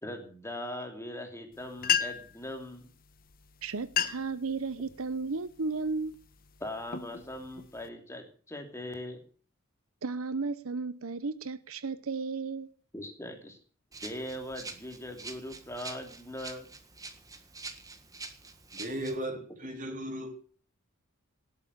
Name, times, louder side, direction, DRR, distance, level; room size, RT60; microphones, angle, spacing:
voice 1, 0.0-2.8 6.6-9.2 12.9-13.6 14.0-16.7, left 1 dB, 10° left, 4 dB, 2.9 m, -40 dB
sound 1, 1.5-1.6 1.8-2.4 3.3-3.4 3.8-4.4 4.9-5.2 5.8-6.1 6.6-7.9, left 8 dB, 40° left, 1.1 m, -31 dB
voice 2, 3.6-6.1 10.0-12.7, right 4 dB, 75° right, 15 dB, 0.9 m, -34 dB
Rattle (instrument), 13.9-19.2, right 3 dB, 15° right, 1.6 m, -46 dB
voice 3, 18.7-20.4, right 1 dB, 35° right, 5 dB, 3.8 m, -36 dB
19.0 x 8.4 x 8.2 m, 0.43 s
head